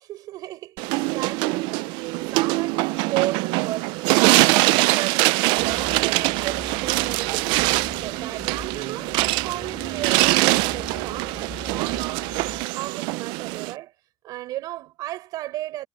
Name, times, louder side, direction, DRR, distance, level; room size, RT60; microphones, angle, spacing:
voice 1, 0.1-4.0 4.2-7.6 8.0-9.2 9.4-12.3 12.7-13.9 14.2-15.9, right 15 dB, 55° right, 6.7 m, -34 dB
sound 1, 0.8-13.7, right 22 dB, 80° right, 0.5 m, -23 dB
sound 2, 2.7-13.0, right 10 dB, 35° right, 7.8 m, -52 dB
sound 3, 5.6-12.6, left 5 dB, 20° left, 2.0 m, -42 dB
cardioid pair, 165°, 8 cm